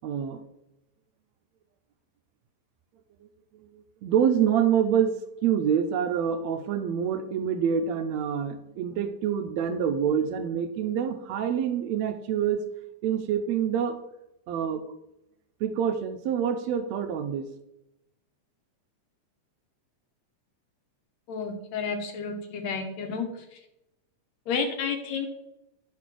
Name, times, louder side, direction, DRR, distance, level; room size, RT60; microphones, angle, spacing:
voice 1, 0.0-0.4 3.7-12.6 13.0-14.0 14.5-14.8 15.6-17.5, right 8 dB, 75° right, 8 dB, 1.8 m, -26 dB
voice 2, 21.3-23.3 24.5-25.3, left 5 dB, 70° left, 5 dB, 2.3 m, -31 dB
9.8 x 4.3 x 6.1 m, 0.87 s
omnidirectional pair, 3.3 m